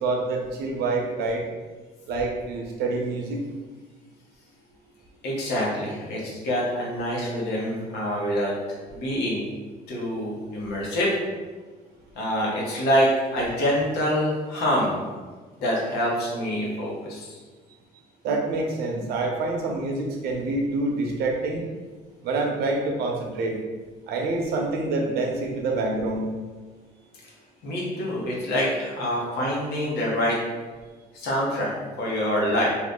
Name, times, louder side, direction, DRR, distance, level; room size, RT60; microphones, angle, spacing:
voice 1, 0.0-1.4 2.1-3.4 18.2-21.6 22.2-23.6 24.1-26.2, right 2 dB, 75° right, 1 dB, 0.7 m, -26 dB
voice 2, 5.2-9.4 9.9-11.1 12.1-15.0 15.6-17.4 27.6-30.4 31.1-32.7, equal, 75° left, -4 dB, 1.1 m, -26 dB
2.8 x 2.4 x 3.6 m, 1.3 s
cardioid pair, 110°, 17 cm